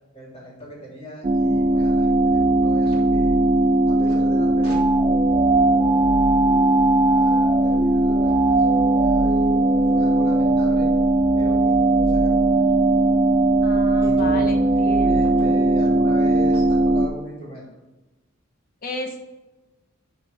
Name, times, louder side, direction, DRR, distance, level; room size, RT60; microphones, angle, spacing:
voice 1, 0.1-3.4 3.9-5.4 6.8-9.5 9.9-10.9 11.4-12.6 14.0-14.4 15.1-17.7, equal, 30° left, -3 dB, 2.7 m, -38 dB
sound 1, 1.2-17.1, right 2 dB, 30° right, 0.3 m, -18 dB
voice 2, 13.6-15.4 18.8-19.2, left 2 dB, 45° left, 3 dB, 1.3 m, -33 dB
11.0 x 4.3 x 3.5 m, 1.1 s
head